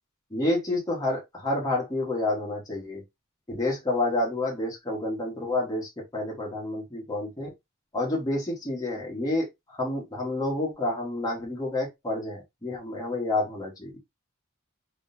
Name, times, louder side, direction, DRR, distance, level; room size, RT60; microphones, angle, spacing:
voice 1, 0.3-3.0 3.5-7.5 7.9-14.0, left 2 dB, 20° left, 1.4 m, -29 dB
3.7 x 3.1 x 2.7 m
head